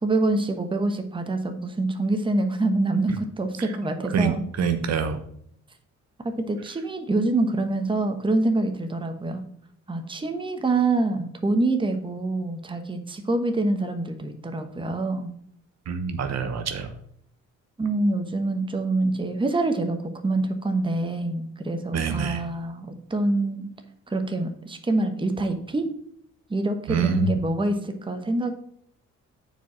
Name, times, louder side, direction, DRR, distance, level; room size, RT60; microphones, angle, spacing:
voice 1, 0.0-4.4 6.2-9.4 9.9-15.3 17.8-23.7 24.1-25.9 26.5-28.5, right 2 dB, 15° right, 6 dB, 1.1 m, -25 dB
voice 2, 4.1-5.2 15.9-16.9 21.9-22.4 26.9-27.4, right 5 dB, 60° right, 8 dB, 1.0 m, -26 dB
6.9 x 4.8 x 6.0 m, 0.68 s
cardioid pair, 90°, 30 cm